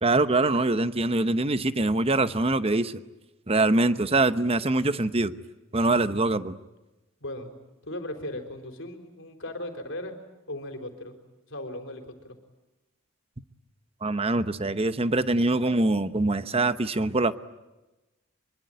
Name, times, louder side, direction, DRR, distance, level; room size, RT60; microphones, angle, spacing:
voice 1, 0.0-3.0 3.5-5.3 5.7-6.6 14.0-17.4, right 2 dB, 30° right, 12 dB, 0.9 m, -24 dB
voice 2, 7.2-7.5 7.8-10.2 10.5-11.2 11.5-12.4, left 1 dB, 60° left, 5 dB, 4.1 m, -37 dB
24.5 x 24.0 x 9.2 m, 1.1 s
head